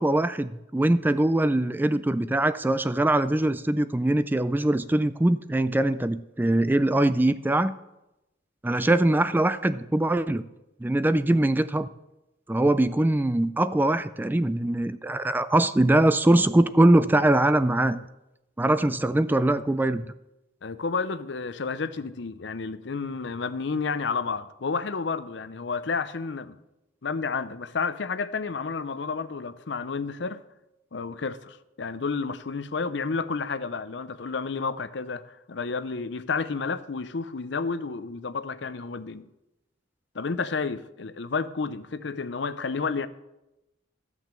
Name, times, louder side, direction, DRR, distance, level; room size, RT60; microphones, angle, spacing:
voice 1, 0.0-7.7 8.6-10.4 10.8-11.9 12.5-18.0 18.6-20.0, right 1 dB, 10° right, 0.3 m, -22 dB
voice 2, 20.6-26.6 27.0-30.4 30.9-39.3 40.1-43.1, left 4 dB, 65° left, 0.6 m, -31 dB
13.5 x 6.0 x 7.6 m
head